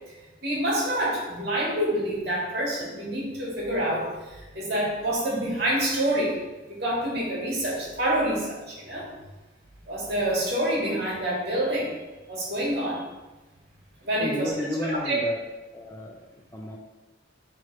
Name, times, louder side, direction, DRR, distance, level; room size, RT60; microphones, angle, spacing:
voice 1, 0.4-6.3 6.7-9.1 9.9-11.9 12.3-13.0 14.0-15.2, right 1 dB, 55° right, -4 dB, 2.2 m, -27 dB
voice 2, 14.2-15.4 15.7-16.8, left 1 dB, 15° left, 1 dB, 0.4 m, -32 dB
6.3 x 3.6 x 5.3 m, 1.1 s
head